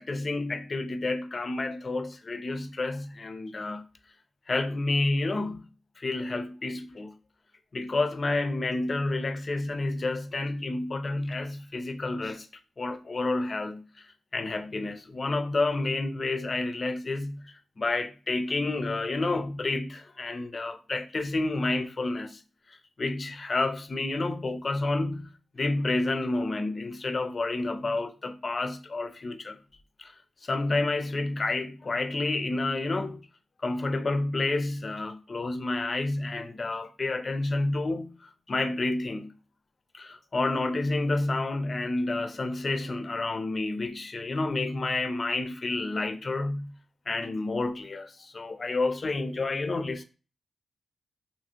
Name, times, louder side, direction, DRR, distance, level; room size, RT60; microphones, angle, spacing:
voice 1, 0.0-3.8 4.5-5.6 6.0-7.2 7.7-12.5 12.8-13.8 14.3-17.4 17.8-22.4 23.0-25.2 25.5-29.6 30.0-30.1 30.4-33.3 33.6-38.1 38.5-39.3 39.9-46.7 47.1-50.0, left 2 dB, 45° left, 0.4 m, -29 dB
2.8 x 2.5 x 2.9 m
cardioid pair, 55°, 0 cm